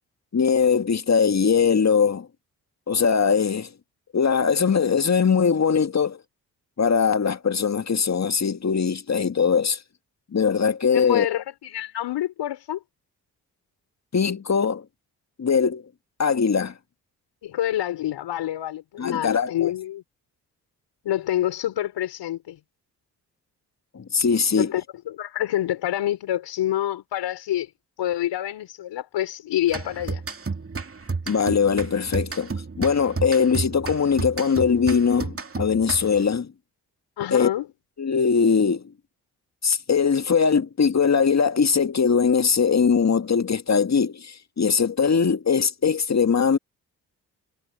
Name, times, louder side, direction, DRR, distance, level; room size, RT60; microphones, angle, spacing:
voice 1, 0.3-2.3 2.9-3.7 4.1-6.2 6.8-9.8 10.3-11.3 14.1-14.9 15.4-15.8 16.2-16.7 19.0-19.7 23.9-24.7 31.3-36.5 37.3-37.5 38.0-38.8 39.6-46.6, left 6 dB, 35° left, 1.9 m, -21 dB
voice 2, 10.9-12.8 17.4-20.0 21.0-22.6 24.5-27.7 28.0-30.2 37.2-37.7, left 12 dB, 70° left, 5.2 m, -27 dB
sound 1, 29.7-36.3, right 4 dB, 30° right, 2.5 m, -32 dB
hypercardioid pair, 40°, 44 cm